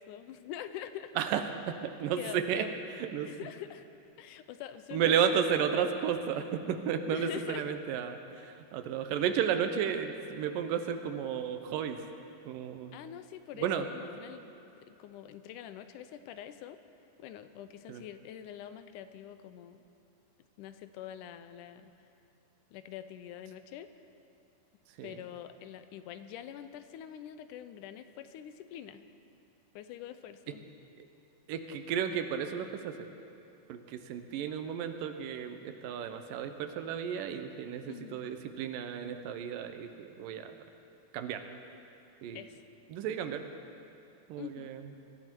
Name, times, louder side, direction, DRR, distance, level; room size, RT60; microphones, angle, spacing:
voice 1, 0.0-1.1 2.2-2.7 3.2-3.9 4.2-5.5 7.1-7.8 12.9-14.5 14.9-16.8 17.2-19.8 20.6-21.9 22.7-23.9 25.0-29.0 29.8-30.6 37.9-38.2 42.4-42.6 44.4-44.7, left 10 dB, 80° left, 11 dB, 2.0 m, -45 dB
voice 2, 1.2-2.7 3.0-3.3 4.9-12.0 12.5-13.0 13.6-13.9 17.9-18.0 25.0-25.2 31.5-33.0 33.7-40.5 41.1-41.4 42.2-42.4 42.9-43.4 44.3-44.8, right 8 dB, 80° right, 8 dB, 2.5 m, -33 dB
22.5 x 13.5 x 4.5 m, 2.6 s
omnidirectional pair, 3.9 m